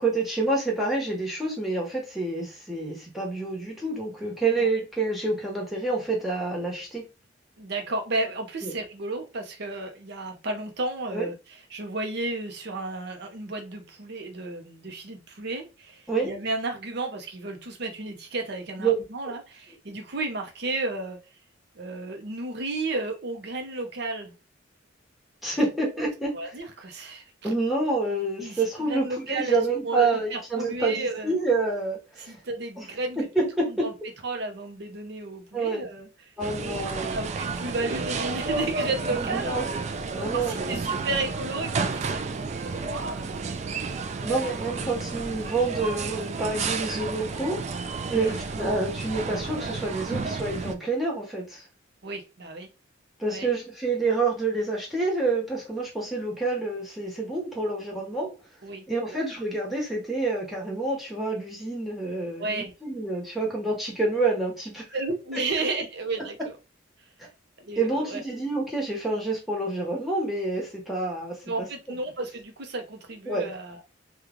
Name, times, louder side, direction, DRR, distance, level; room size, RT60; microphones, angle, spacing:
voice 1, 0.0-7.0 8.6-8.7 11.1-11.3 16.1-16.3 18.8-18.9 19.2-19.3 25.4-26.5 27.4-32.3 32.8-32.9 33.2-33.9 35.5-35.9 36.4-37.2 39.2-39.6 40.1-41.0 44.2-47.6 48.1-51.6 53.2-58.3 58.9-64.8 67.2-67.3 67.8-71.6 73.3-73.5, right 3 dB, ahead, 1.1 m, -28 dB
voice 2, 7.6-21.2 21.8-24.3 26.3-27.5 28.4-31.3 32.2-33.2 33.7-33.9 34.2-36.3 36.9-39.7 40.3-43.3 44.0-44.5 48.2-48.3 52.0-52.7 53.3-53.5 58.6-59.2 62.4-62.7 64.9-66.6 67.6-68.2 71.4-73.8, right 2 dB, 55° right, 0.7 m, -33 dB
sound 1, 36.4-50.7, right 4 dB, 35° right, 0.3 m, -31 dB
3.0 x 2.3 x 3.6 m
head